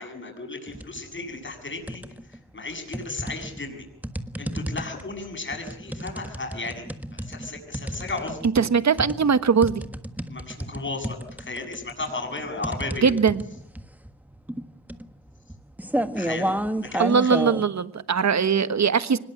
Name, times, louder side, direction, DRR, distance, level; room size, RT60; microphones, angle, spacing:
voice 1, 0.0-2.0 2.3-3.9 4.4-8.4 10.3-13.1 16.1-16.5 16.9-17.4, left 3 dB, 30° left, 4 dB, 7.1 m, -35 dB
sound 1, 0.7-1.1 1.4-2.4 2.9-17.6, right 1 dB, 5° right, 1.5 m, -31 dB
voice 2, 8.5-9.8 13.0-13.4 17.0-19.2, right 6 dB, 45° right, 13 dB, 1.4 m, -21 dB
24.0 x 20.5 x 7.7 m, 0.66 s
wide cardioid pair, 110°, 39 cm